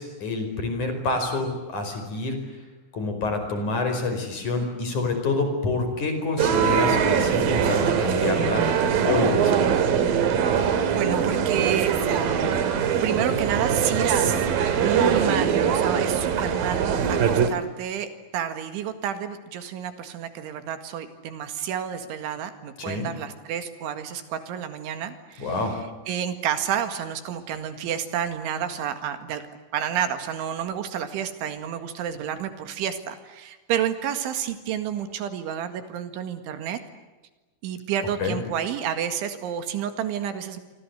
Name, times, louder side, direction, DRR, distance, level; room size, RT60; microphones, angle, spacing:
voice 1, 0.0-2.4 2.9-8.6 9.1-9.6 22.8-23.1 25.4-25.8 38.2-38.4, left 3 dB, 40° left, 6 dB, 6.0 m, -27 dB
sound 1, 6.4-17.5, right 7 dB, 55° right, 3.3 m, -22 dB
voice 2, 10.9-11.9 13.0-14.4 14.8-25.8 26.1-29.4 29.7-36.8 37.6-40.6, right 9 dB, 80° right, 9 dB, 4.3 m, -30 dB
27.5 x 25.5 x 8.1 m, 1.2 s
omnidirectional pair, 5.5 m